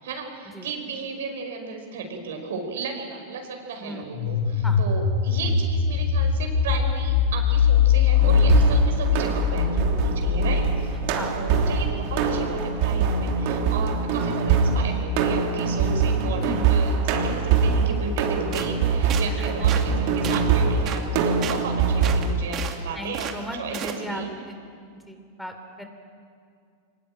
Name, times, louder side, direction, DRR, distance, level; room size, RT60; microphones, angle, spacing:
voice 1, 0.0-11.0 11.3-23.3 23.6-24.3, right 4 dB, 80° right, 4 dB, 5.3 m, -34 dB
sound 1, 4.1-12.8, left 6 dB, 80° left, 5.9 m, -22 dB
sound 2, 8.2-22.3, right 5 dB, 60° right, 3.1 m, -23 dB
sound 3, 18.5-18.7 19.1-19.3 19.7-19.9 20.2-20.5 20.9-21.0 21.4-21.6 22.0-22.8 23.1-23.4 23.7-24.0, right 9 dB, 40° right, 2.5 m, -32 dB
voice 2, 19.4-19.7 22.9-24.5 25.1-25.8, left 1 dB, 5° left, 5 dB, 3.1 m, -36 dB
23.5 x 20.5 x 9.1 m, 2.3 s
hypercardioid pair, 115°, 0 cm